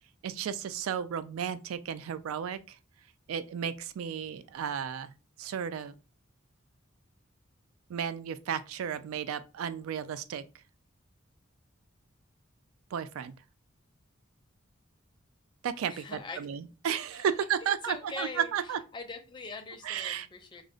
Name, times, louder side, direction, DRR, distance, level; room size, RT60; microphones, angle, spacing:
voice 1, 0.2-2.8 3.3-5.1 5.4-5.9 7.9-10.4 12.9-13.3 15.6-18.8 19.8-20.3, right 8 dB, 85° right, 0.3 m, -33 dB
voice 2, 15.9-16.7 17.6-18.5 18.9-20.6, left 3 dB, 20° left, 0.5 m, -42 dB
2.4 x 2.0 x 3.7 m
head